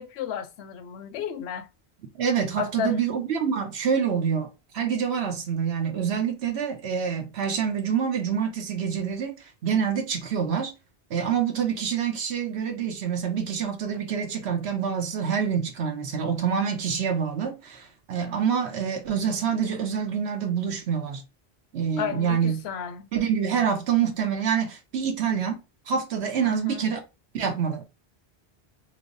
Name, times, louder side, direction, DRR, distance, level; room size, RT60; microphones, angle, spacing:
voice 1, 0.0-1.7 2.6-3.0 22.0-23.1 26.4-26.8, left 8 dB, 85° left, 0.8 m, -33 dB
voice 2, 2.2-4.5 4.7-9.3 9.6-10.7 11.1-21.2 21.7-22.6 23.1-25.6 25.9-27.0 27.3-27.8, right 7 dB, 85° right, 1.1 m, -26 dB
3.3 x 2.0 x 3.8 m
omnidirectional pair, 1.1 m